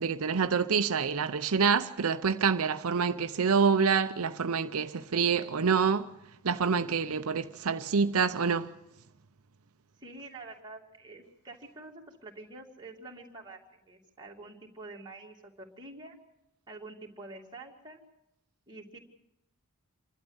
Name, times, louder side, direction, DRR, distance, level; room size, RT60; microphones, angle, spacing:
voice 1, 0.0-6.1 6.4-8.7, right 6 dB, 75° right, 0.7 m, -27 dB
voice 2, 10.0-13.6 13.8-16.2 16.7-18.0 18.7-19.0, right 2 dB, 20° right, 2.7 m, -47 dB
28.0 x 12.0 x 8.1 m
head